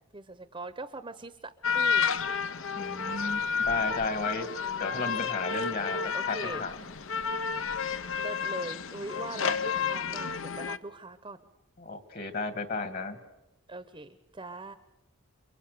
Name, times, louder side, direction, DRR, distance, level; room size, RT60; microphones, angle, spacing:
voice 1, 0.1-2.1 4.5-5.2 5.8-6.6 8.2-11.4 13.7-14.7, right 2 dB, 25° right, 12 dB, 0.9 m, -41 dB
sound 1, 1.6-10.8, left 6 dB, 65° left, 0.8 m, -31 dB
voice 2, 2.8-4.5 4.8-6.0 6.3-6.7 11.8-13.2, left 3 dB, 45° left, 10 dB, 2.0 m, -33 dB
29.5 x 23.5 x 6.8 m, 0.97 s
head